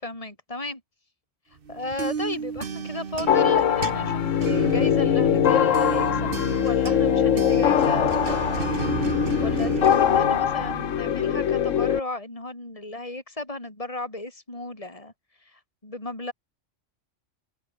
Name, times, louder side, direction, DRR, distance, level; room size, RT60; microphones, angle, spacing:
voice 1, 0.0-0.8 1.7-8.7 9.4-15.1 15.4-16.3, left 2 dB, 25° left, 4.9 m, -35 dB
sound 1, 1.7-11.3, right 6 dB, 50° right, 1.3 m, -32 dB
sound 2, 3.3-12.0, left 9 dB, 90° left, 1.3 m, -22 dB
open air
omnidirectional pair, 1.3 m